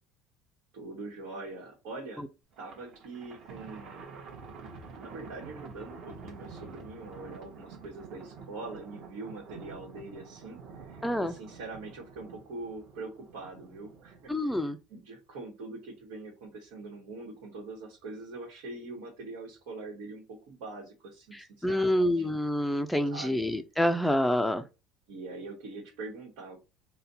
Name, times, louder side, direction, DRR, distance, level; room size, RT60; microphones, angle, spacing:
voice 1, 0.7-2.3 2.6-4.1 5.0-22.3 23.1-23.4 25.1-26.6, right 3 dB, 80° right, 1.2 m, -43 dB
Thunder, 2.5-14.3, right 5 dB, 45° right, 1.0 m, -48 dB
voice 2, 11.0-11.3 14.3-14.8 21.3-24.6, left 1 dB, ahead, 0.3 m, -27 dB
4.1 x 2.1 x 4.0 m
cardioid pair, 160°, 0 cm